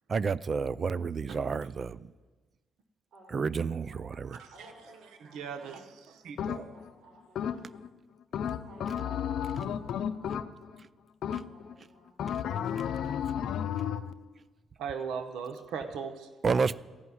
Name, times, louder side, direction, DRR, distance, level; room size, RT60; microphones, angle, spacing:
voice 1, 0.1-2.0 3.3-4.4 11.3-11.4 16.4-16.8, right 5 dB, 40° right, 20 dB, 0.4 m, -30 dB
voice 2, 3.1-4.0 4.5-5.7 6.7-7.7 8.3-9.5 10.0-10.4 11.3-12.1, right 1 dB, 65° right, -4 dB, 4.0 m, -55 dB
voice 3, 5.2-6.7 14.8-16.3, right 6 dB, 85° right, 7 dB, 0.9 m, -38 dB
sound 1, 6.4-6.9 7.3-7.9 8.3-10.8 11.2-11.7 12.2-14.1, left 8 dB, 70° left, 0.5 m, -33 dB
14.0 x 5.6 x 9.6 m, 1.3 s
cardioid pair, 90°, 0 cm